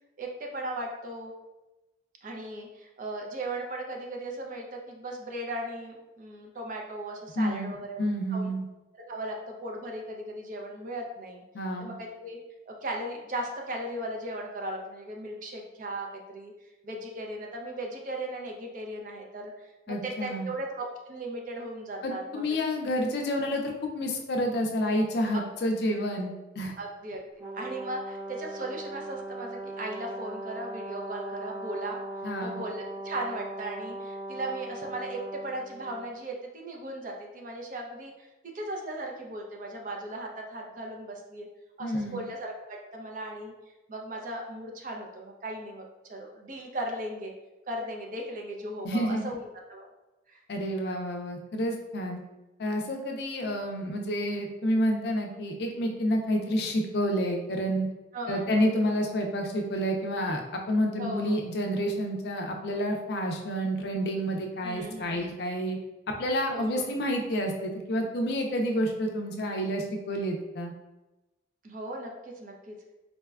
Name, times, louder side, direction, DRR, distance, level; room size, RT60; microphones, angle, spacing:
voice 1, 0.2-1.3 2.2-8.5 8.9-11.4 11.8-12.4 12.7-16.5 16.8-22.4 25.3-25.4 26.8-27.2 27.5-32.0 32.4-38.1 38.5-41.5 41.8-43.5 43.9-47.3 47.7-49.9 50.3-50.4 56.5-56.6 58.1-58.7 61.0-61.4 64.6-65.3 66.5-67.0 71.6-72.8, right 1 dB, 45° right, 1 dB, 0.4 m, -37 dB
voice 2, 7.4-8.6 11.5-11.9 19.9-20.5 22.0-26.7 32.2-32.6 41.8-42.2 48.8-49.3 50.5-52.2 52.6-57.9 58.3-65.8 66.2-70.7, equal, 55° left, 2 dB, 0.4 m, -29 dB
Brass instrument, 27.4-36.1, right 1 dB, 25° right, 0.8 m, -39 dB
3.9 x 2.2 x 2.3 m, 1.0 s
head